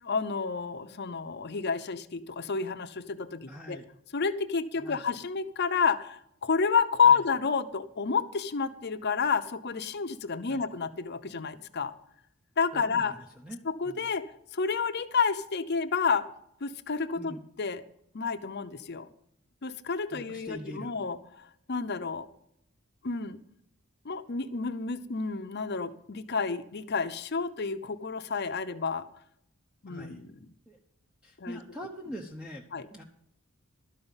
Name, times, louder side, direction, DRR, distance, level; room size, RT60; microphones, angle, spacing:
voice 1, 0.0-3.8 4.1-11.9 12.6-13.2 13.6-14.3 14.5-16.3 16.6-17.8 18.1-19.1 19.6-22.3 23.0-23.4 24.0-29.0 29.8-30.3 31.4-31.6 32.7-32.9, left 5 dB, 50° left, 10 dB, 0.7 m, -30 dB
voice 2, 3.5-3.9 4.8-5.0 7.0-7.2 10.5-10.6 12.7-13.6 13.8-14.0 17.1-17.4 20.1-20.9 29.9-30.2 30.7-30.8 31.2-33.0, equal, 5° right, 2 dB, 0.8 m, -43 dB
12.5 x 5.5 x 8.9 m, 0.74 s
head